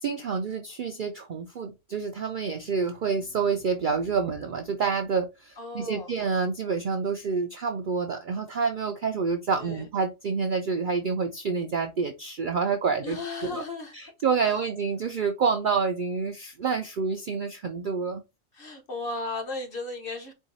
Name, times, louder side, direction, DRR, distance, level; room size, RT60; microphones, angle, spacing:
voice 1, 0.0-13.2 13.4-13.6 13.9-18.2, right 5 dB, 60° right, 0.5 m, -28 dB
voice 2, 5.6-6.1 9.6-9.9 13.0-13.9 14.4-14.6 18.5-20.3, left 3 dB, 45° left, 1.2 m, -35 dB
4.5 x 2.3 x 3.9 m
omnidirectional pair, 1.4 m